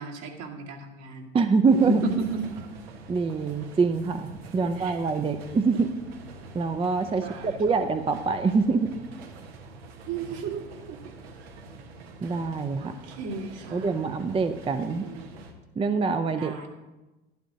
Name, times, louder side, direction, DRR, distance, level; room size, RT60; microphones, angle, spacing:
voice 1, 0.0-1.3 1.7-2.6 4.8-5.0 7.2-7.6 10.1-11.1 12.8-14.1 15.0-15.4 16.4-16.7, right 4 dB, 60° right, 1 dB, 2.1 m, -34 dB
voice 2, 1.3-2.0 3.1-5.9 6.5-8.9 12.2-12.9 13.7-15.1 15.8-16.5, right 4 dB, 20° right, 9 dB, 0.6 m, -25 dB
sound 1, 1.7-15.5, right 3 dB, 80° right, 1.4 m, -45 dB
11.5 x 11.0 x 2.8 m, 1.1 s
hypercardioid pair, 75°, 31 cm